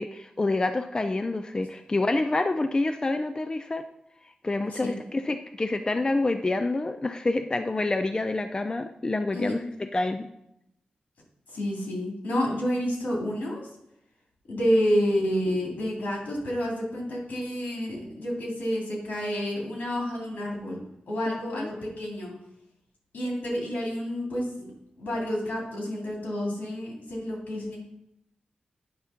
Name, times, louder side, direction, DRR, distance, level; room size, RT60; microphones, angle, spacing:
voice 1, 0.0-3.8 4.4-10.3 21.3-21.7, left 2 dB, 30° left, 8 dB, 0.4 m, -27 dB
voice 2, 9.3-9.7 11.5-13.7 14.5-20.8 21.1-22.3 23.1-24.7 25.0-27.8, equal, 85° left, -2 dB, 2.6 m, -29 dB
9.5 x 3.4 x 5.7 m, 0.80 s
wide cardioid pair, 80°, 3 cm